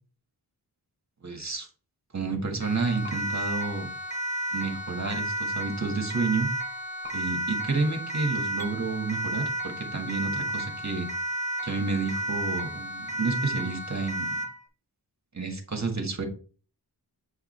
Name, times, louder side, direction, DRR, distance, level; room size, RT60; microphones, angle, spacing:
voice 1, 1.2-1.7 2.1-3.9 4.5-6.5 7.1-11.1 11.6-14.4 15.3-16.2, right 4 dB, 40° right, 3 dB, 1.7 m, -30 dB
Siren, 2.6-14.6, right 1 dB, 15° left, 1.4 m, -32 dB
sound 1, 3.0-3.2 5.0-5.2 7.0-7.2 8.6-8.7, left 2 dB, 25° right, 2.8 m, -42 dB
8.2 x 4.9 x 3.3 m, 0.39 s
wide cardioid pair, 80°, 42 cm